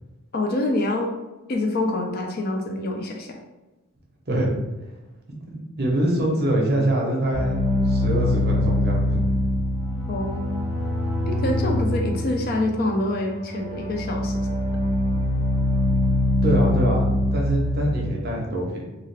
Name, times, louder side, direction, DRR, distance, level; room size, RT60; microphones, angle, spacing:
voice 1, 0.3-1.1 1.5-3.4 10.1-10.7 11.3-14.6, left 2 dB, 40° left, 2 dB, 0.3 m, -26 dB
voice 2, 5.4-9.2 10.3-10.4 16.4-18.9, right 1 dB, 45° right, -1 dB, 0.6 m, -24 dB
sound 1, 7.3-18.1, left 1 dB, 15° left, 0.8 m, -24 dB
2.4 x 2.3 x 3.2 m, 1.1 s
head